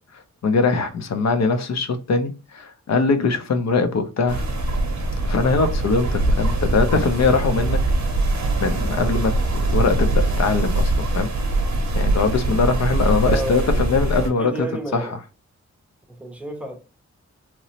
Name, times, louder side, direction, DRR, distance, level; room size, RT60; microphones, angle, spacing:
voice 1, 0.4-4.4 5.2-7.8 8.6-11.3 11.9-14.7 14.9-15.0, left 4 dB, 65° left, 0.5 m, -21 dB
sound 1, 4.3-14.3, right 2 dB, 70° right, 0.6 m, -22 dB
voice 2, 13.0-15.2 16.1-16.8, right 1 dB, 5° right, 0.5 m, -32 dB
2.9 x 2.0 x 2.7 m
wide cardioid pair, 105°, 29 cm